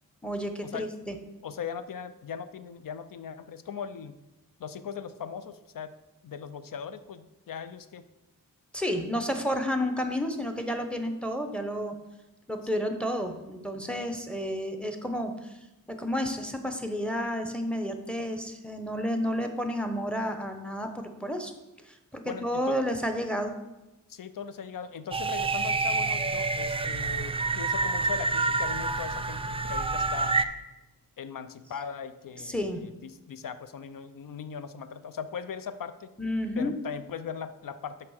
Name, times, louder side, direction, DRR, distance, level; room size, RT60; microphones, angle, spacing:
voice 1, 0.2-1.1 8.7-12.0 12.5-15.5 15.9-21.5 21.8-23.5 32.4-32.9 36.2-36.7, equal, 5° left, 6 dB, 0.8 m, -31 dB
voice 2, 1.4-4.2 4.6-5.9 6.2-8.0 22.2-22.8 24.1-30.4 31.2-36.1 36.6-38.1, left 7 dB, 70° left, 12 dB, 0.6 m, -39 dB
sound 1, 25.1-30.4, right 3 dB, 15° right, 0.3 m, -28 dB
6.0 x 4.8 x 6.3 m, 0.99 s
wide cardioid pair, 100°, 35 cm